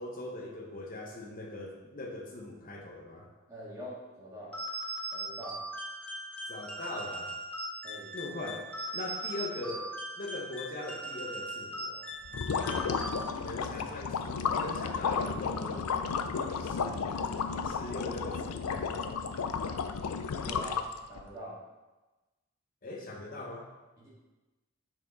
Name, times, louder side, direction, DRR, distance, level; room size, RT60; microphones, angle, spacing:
voice 1, 0.0-3.3 6.5-7.3 8.1-12.1 13.4-16.0 16.6-19.3 22.8-23.7, left 2 dB, 40° left, 0 dB, 0.9 m, -41 dB
voice 2, 3.5-4.5 5.1-5.6 7.8-8.1 12.6-12.9 20.4-21.6 24.0-24.1, equal, 15° right, -8 dB, 1.8 m, -44 dB
sound 1, 4.5-13.6, right 1 dB, 5° left, 0.6 m, -39 dB
sound 2, 12.3-21.2, left 5 dB, 85° left, 0.4 m, -33 dB
6.1 x 4.4 x 3.9 m, 1.1 s
head